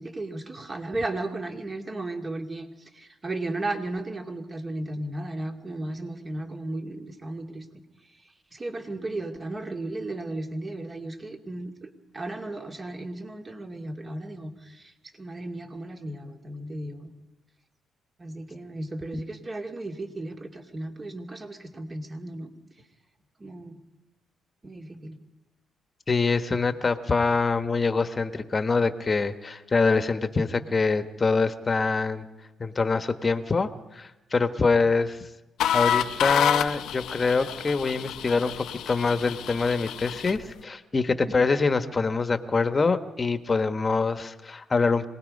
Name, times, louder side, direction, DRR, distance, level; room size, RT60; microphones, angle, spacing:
voice 1, 0.0-2.7 2.9-7.7 8.5-14.9 15.2-17.1 18.2-22.5 23.4-23.8 24.6-25.2 41.3-41.4, right 2 dB, 30° right, 3 dB, 2.6 m, -35 dB
voice 2, 26.1-32.2 32.6-35.2 35.7-45.1, left 4 dB, 30° left, 9 dB, 1.4 m, -25 dB
sound 1, 35.6-40.4, left 10 dB, 80° left, 0.8 m, -28 dB
26.0 x 19.5 x 5.4 m, 1.0 s
cardioid pair, 90°, 0 cm